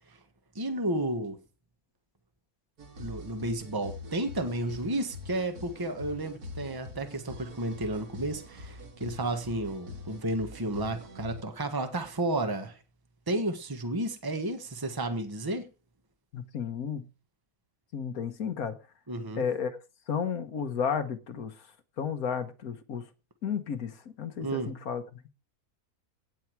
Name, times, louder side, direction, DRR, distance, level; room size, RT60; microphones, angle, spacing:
voice 1, 0.5-1.4 3.0-12.8 13.3-15.7 19.1-19.4 24.4-24.7, right 1 dB, 15° right, 1.4 m, -32 dB
sound 1, 2.8-11.4, left 2 dB, 80° right, 2.4 m, -44 dB
voice 2, 16.3-17.1 17.9-18.8 19.4-19.7 20.1-21.5 22.0-23.0 23.4-25.0, left 7 dB, 70° left, 1.6 m, -32 dB
17.0 x 7.1 x 4.6 m
omnidirectional pair, 1.6 m